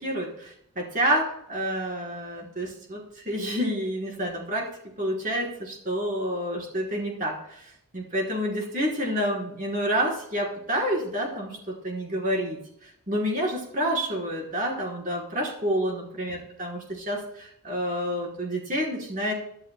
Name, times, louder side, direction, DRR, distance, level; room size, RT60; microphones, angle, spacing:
voice 1, 0.0-4.7 5.0-19.3, equal, 35° right, -2 dB, 3.9 m, -29 dB
23.5 x 11.0 x 2.2 m, 0.74 s
head